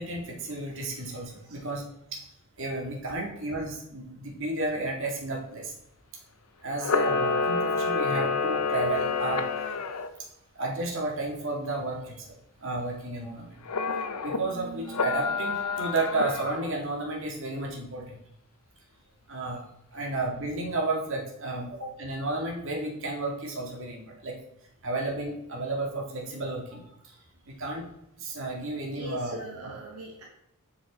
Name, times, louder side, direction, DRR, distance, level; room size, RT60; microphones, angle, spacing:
voice 1, 0.0-1.9 2.1-2.2 2.6-5.7 6.6-9.8 10.6-13.6 14.2-18.2 19.3-24.4 24.8-26.8 27.5-27.9 28.2-29.4 29.6-29.7, right 2 dB, 60° right, -1 dB, 2.0 m, -32 dB
Camera, 6.8-10.1 13.7-14.4 14.9-16.7, left 4 dB, 85° left, 0.6 m, -28 dB
voice 2, 28.9-30.2, equal, 85° right, -2 dB, 1.5 m, -41 dB
7.5 x 5.8 x 4.3 m, 0.81 s
head